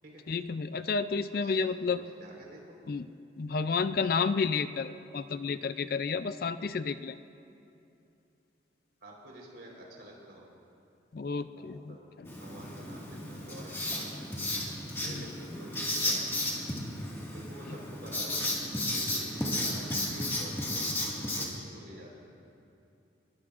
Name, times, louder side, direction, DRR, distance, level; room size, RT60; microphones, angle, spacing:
voice 1, 0.3-2.0 2.9-3.1 3.4-7.2 11.1-12.3 15.1-15.2, left 5 dB, 50° left, 12 dB, 0.4 m, -31 dB
voice 2, 1.9-2.8 9.0-10.5 11.5-12.1 12.4-14.3 15.0-16.4 17.2-22.2, equal, 65° right, -2 dB, 4.0 m, -49 dB
Writing, 12.2-21.5, left 1 dB, 15° left, 1.8 m, -33 dB
22.0 x 20.5 x 2.5 m, 2.7 s
head